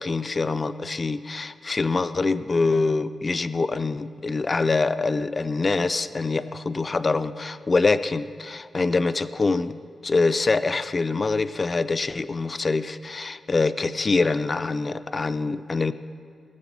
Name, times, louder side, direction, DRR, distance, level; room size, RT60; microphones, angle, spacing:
voice 1, 0.0-15.9, left 3 dB, 35° left, 12 dB, 0.5 m, -25 dB
18.5 x 7.4 x 6.0 m, 2.2 s
cardioid pair, 75°, 0 cm